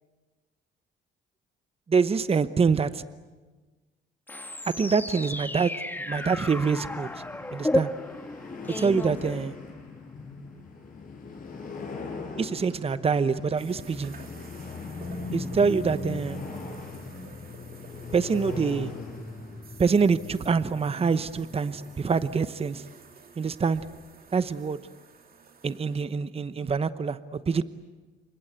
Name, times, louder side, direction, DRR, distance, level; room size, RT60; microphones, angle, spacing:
voice 1, 1.9-3.0 4.7-7.1 7.5-7.9 8.7-9.5 12.4-14.1 15.3-16.4 18.1-18.9 19.8-22.8 23.4-23.8 24.3-24.8 25.6-27.6, right 5 dB, 30° right, 13 dB, 0.9 m, -25 dB
sound 1, 4.3-9.9, left 1 dB, 10° left, 1.3 m, -33 dB
sound 2, 6.1-22.4, left 3 dB, 45° left, 5.5 m, -40 dB
sound 3, 13.6-26.1, right 4 dB, 50° right, 2.7 m, -50 dB
28.5 x 24.5 x 8.2 m, 1.3 s
cardioid pair, 90°, 20 cm